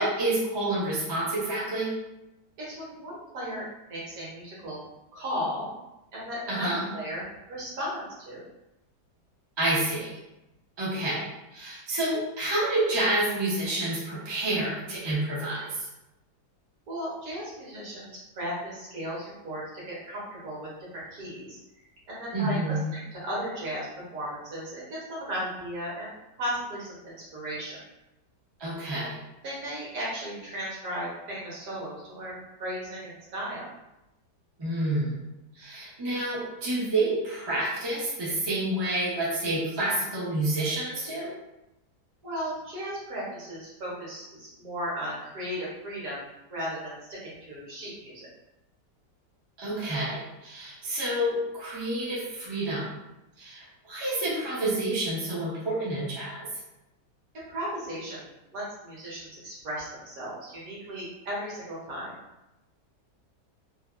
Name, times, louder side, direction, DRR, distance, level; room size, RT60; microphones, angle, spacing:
voice 1, 0.0-1.9 6.5-6.9 9.6-10.2 10.8-15.9 22.3-22.8 28.6-29.2 34.6-35.2 35.6-41.3 49.6-52.9 53.4-56.5, right 1 dB, 35° right, -7 dB, 0.4 m, -29 dB
voice 2, 2.6-4.8 5.1-5.7 6.1-8.4 16.9-21.6 22.1-22.8 23.1-27.8 29.4-33.7 42.2-48.3 57.3-62.1, equal, 60° right, -7 dB, 1.4 m, -36 dB
3.3 x 2.3 x 2.4 m, 0.94 s
omnidirectional pair, 1.9 m